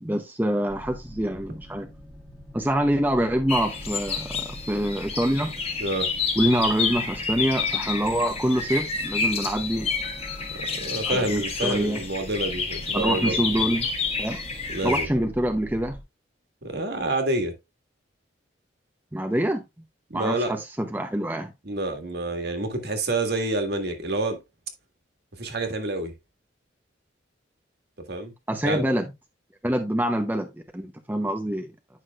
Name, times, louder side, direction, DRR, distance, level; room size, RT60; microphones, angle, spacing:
voice 1, 0.0-1.9 2.5-5.5 6.4-9.9 11.0-12.0 12.9-13.9 14.2-14.4 14.8-16.0 19.1-19.6 20.1-21.5 28.5-29.1 29.6-31.7, right 1 dB, 10° right, 0.8 m, -25 dB
sound 1, 0.7-16.0, equal, 5° left, 1.7 m, -43 dB
sound 2, 3.5-15.1, left 5 dB, 35° left, 1.4 m, -29 dB
voice 2, 10.7-13.7 14.7-15.1 16.6-17.5 20.1-20.5 21.7-24.4 25.4-26.1 28.1-28.3 28.6-28.8, right 2 dB, 60° right, 1.7 m, -28 dB
9.5 x 5.9 x 2.4 m
head